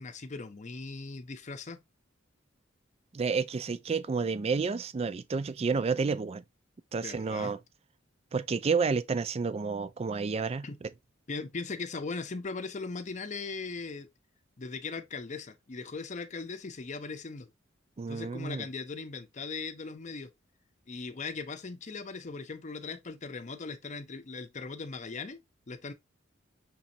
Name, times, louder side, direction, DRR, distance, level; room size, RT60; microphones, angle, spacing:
voice 1, 0.0-1.8 7.0-7.5 10.6-10.8 11.3-14.1 14.6-17.5 18.1-20.3 20.9-25.9, left 4 dB, 40° left, 0.6 m, -39 dB
voice 2, 3.1-6.4 6.9-7.6 8.3-10.9 18.0-18.7, right 5 dB, 30° right, 0.3 m, -30 dB
6.0 x 3.1 x 2.7 m
head